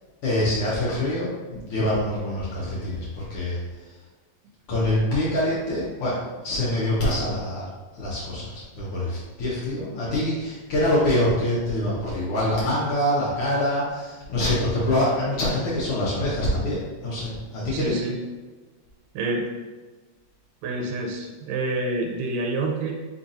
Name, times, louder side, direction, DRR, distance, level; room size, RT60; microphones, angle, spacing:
voice 1, 0.2-3.6 4.7-7.6 7.9-17.9, left 1 dB, 85° left, -7 dB, 1.2 m, -25 dB
voice 2, 17.7-18.2 19.1-19.5 20.6-22.9, right 2 dB, 80° right, 1 dB, 2.1 m, -27 dB
5.1 x 4.1 x 2.5 m, 1.3 s
omnidirectional pair, 3.9 m